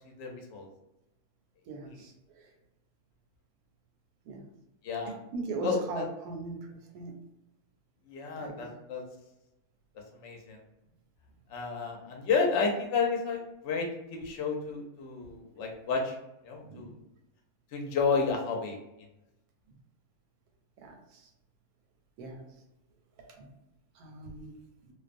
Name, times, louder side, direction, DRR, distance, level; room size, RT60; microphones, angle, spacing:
voice 1, 0.2-0.7 1.9-2.0 4.8-5.2 5.6-6.1 8.1-9.0 10.1-10.6 11.5-16.2 16.4-16.9 17.7-18.8, left 5 dB, 65° left, 1 dB, 0.8 m, -31 dB
voice 2, 1.7-2.1 4.3-4.4 5.3-7.1 8.4-8.7 16.6-16.9 20.8-20.9 22.2-22.4 23.4-23.5 24.0-24.5, right 3 dB, 85° right, 2 dB, 1.1 m, -39 dB
2.4 x 2.2 x 2.5 m, 0.91 s
omnidirectional pair, 1.6 m